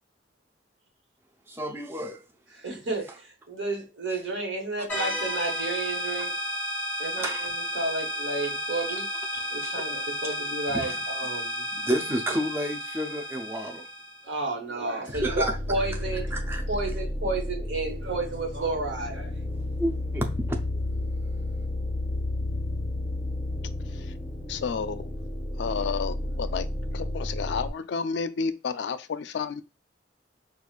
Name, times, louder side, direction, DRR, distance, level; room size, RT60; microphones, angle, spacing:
voice 1, 1.5-2.2 4.1-4.2 6.2-6.3 7.2-7.5 9.3-9.8 10.2-10.4 10.7-11.3 11.7-13.9 15.1-15.6 16.3-16.6 19.8-20.6, equal, 15° right, 0.5 m, -31 dB
voice 2, 2.6-6.3 7.0-7.5 7.7-9.1 9.5-11.6 14.2-16.3 16.7-19.4, right 2 dB, 85° right, 1.2 m, -31 dB
sound 1, 4.9-14.3, equal, 10° left, 1.4 m, -32 dB
sound 2, 15.1-27.7, left 1 dB, 25° left, 1.2 m, -32 dB
voice 3, 24.5-25.1 25.6-26.7 26.9-29.6, left 5 dB, 70° left, 0.4 m, -31 dB
4.5 x 2.4 x 2.4 m
head